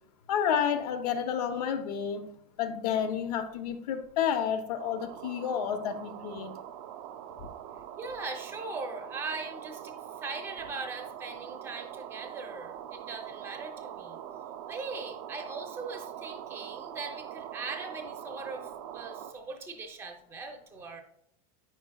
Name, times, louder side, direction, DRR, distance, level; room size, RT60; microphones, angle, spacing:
voice 1, 0.3-6.6, left 8 dB, 80° left, 0.9 m, -30 dB
sound 1, 4.8-19.3, right 10 dB, 50° right, 0.5 m, -43 dB
voice 2, 8.0-10.0 10.2-14.2 14.7-21.0, right 3 dB, 10° right, 0.7 m, -40 dB
9.1 x 6.1 x 2.3 m
supercardioid pair, 170°, 20 cm